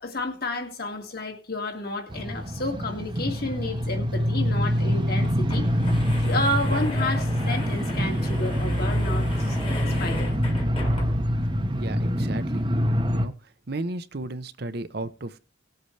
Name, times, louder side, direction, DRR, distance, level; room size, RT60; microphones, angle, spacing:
voice 1, 0.0-5.7 6.2-9.6 10.0-10.2, left 2 dB, 50° left, 2.2 m, -31 dB
sound 1, 2.1-13.3, equal, 25° right, 0.9 m, -25 dB
sound 2, 5.0-11.4, left 1 dB, 30° left, 1.7 m, -37 dB
voice 2, 11.7-12.7 13.0-13.3 13.7-15.4, right 2 dB, 55° right, 0.8 m, -34 dB
19.0 x 8.0 x 3.3 m
head